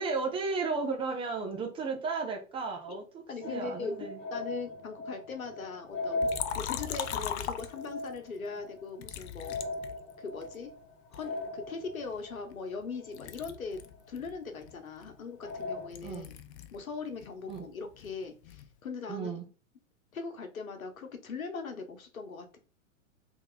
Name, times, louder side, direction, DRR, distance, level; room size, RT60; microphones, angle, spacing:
voice 1, 0.0-4.2 16.0-16.3 17.5-17.7 19.1-19.5, right 4 dB, 15° right, 3 dB, 0.4 m, -34 dB
voice 2, 3.3-3.9 4.3-6.3 6.5-9.5 10.2-10.7 11.1-13.8 14.1-16.3 16.7-19.4 20.1-22.6, left 4 dB, 85° left, 6 dB, 1.0 m, -40 dB
sound 1, 3.4-14.2 14.7-14.8 15.4-15.9, left 2 dB, 30° left, 1.8 m, -39 dB
Liquid, 6.2-8.2 9.0-10.6 11.1-12.9 13.1-16.8 17.1-18.7, left 9 dB, 55° left, 0.6 m, -40 dB
3.3 x 2.8 x 3.8 m, 0.37 s
hypercardioid pair, 115°, 41 cm